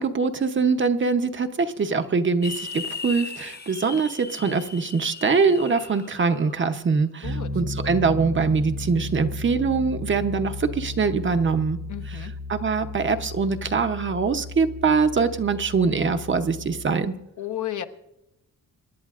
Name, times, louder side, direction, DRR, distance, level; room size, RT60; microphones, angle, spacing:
voice 1, 0.0-11.8 12.5-17.1, right 5 dB, 35° right, 7 dB, 0.8 m, -23 dB
sound 1, 2.4-6.6, left 5 dB, 30° left, 0.8 m, -37 dB
voice 2, 7.2-7.6 11.9-12.4 17.4-17.8, left 11 dB, 65° left, 7 dB, 1.0 m, -33 dB
Piano, 7.2-16.8, left 2 dB, 90° right, 1.9 m, -34 dB
26.0 x 11.0 x 2.5 m, 0.90 s
wide cardioid pair, 130°, 33 cm